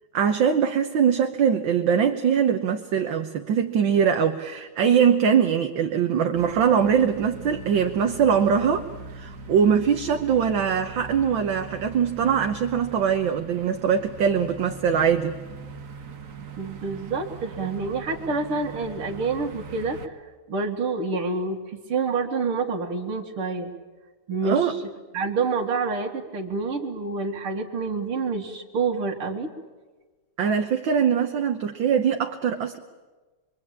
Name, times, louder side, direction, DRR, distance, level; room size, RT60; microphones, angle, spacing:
voice 1, 0.1-8.9 9.1-15.3 24.5-24.7 30.4-32.8, right 7 dB, 65° right, 5 dB, 1.7 m, -22 dB
sound 1, 6.3-20.1, right 4 dB, 45° right, 1.5 m, -41 dB
voice 2, 16.6-23.7 24.3-24.8 25.1-29.5, right 4 dB, 85° right, 0 dB, 2.7 m, -28 dB
25.5 x 23.5 x 8.8 m, 1.3 s
omnidirectional pair, 2.4 m